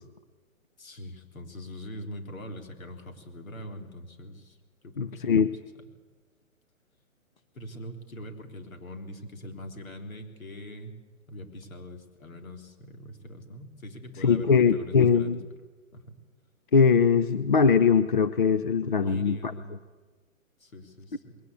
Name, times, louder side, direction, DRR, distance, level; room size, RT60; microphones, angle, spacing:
voice 1, 0.8-4.6 4.8-5.4 7.5-11.0 11.3-15.4 15.9-16.2 18.8-19.8 20.6-21.4, left 1 dB, 70° left, 5 dB, 3.7 m, -42 dB
voice 2, 5.0-5.5 14.2-15.4 16.7-19.5, left 6 dB, 40° left, 12 dB, 0.6 m, -21 dB
20.5 x 18.0 x 8.4 m, 1.4 s
hypercardioid pair, 170°, 42 cm